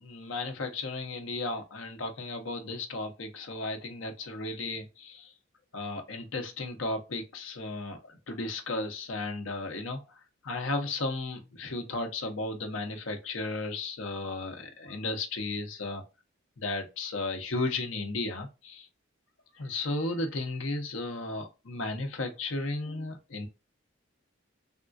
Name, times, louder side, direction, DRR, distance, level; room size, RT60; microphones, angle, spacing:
voice 1, 0.0-5.3 5.7-8.0 8.3-10.0 10.4-16.0 16.6-18.9 19.6-23.5, left 2 dB, 90° left, 0.8 m, -34 dB
3.6 x 2.3 x 2.4 m
head